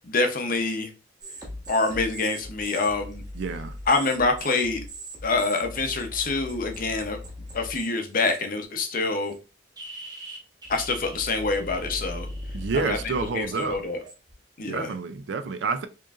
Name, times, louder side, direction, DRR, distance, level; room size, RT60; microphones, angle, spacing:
voice 1, 0.0-0.9 1.7-3.2 3.9-4.8 5.2-7.2 7.5-9.3 10.7-12.3 12.8-13.0 13.3-14.0 14.6-14.9, left 3 dB, 45° left, 0.7 m, -26 dB
sound 1, 1.2-7.9 8.2-8.6 9.2-9.4 9.8-14.3, equal, 20° right, 1.0 m, -39 dB
voice 2, 3.3-3.8 12.5-13.8 14.6-15.9, right 4 dB, 65° right, 0.4 m, -29 dB
4.7 x 3.0 x 2.4 m
head